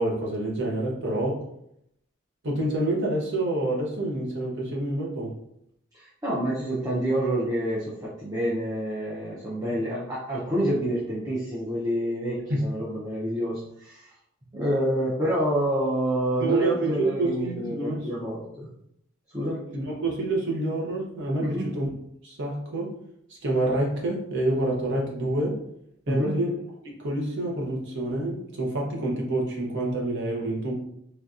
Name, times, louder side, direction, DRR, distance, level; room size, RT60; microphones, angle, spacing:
voice 1, 0.0-1.4 2.4-5.3 12.5-12.6 16.4-18.1 19.7-21.9 22.2-22.9 23.4-25.6 26.1-26.5 27.0-30.8, right 2 dB, 55° right, -2 dB, 0.9 m, -27 dB
voice 2, 5.9-14.1 14.5-18.7 19.3-19.6 21.4-21.7 26.1-26.3, right 1 dB, 15° right, -7 dB, 0.6 m, -28 dB
3.3 x 2.7 x 2.4 m, 0.74 s
head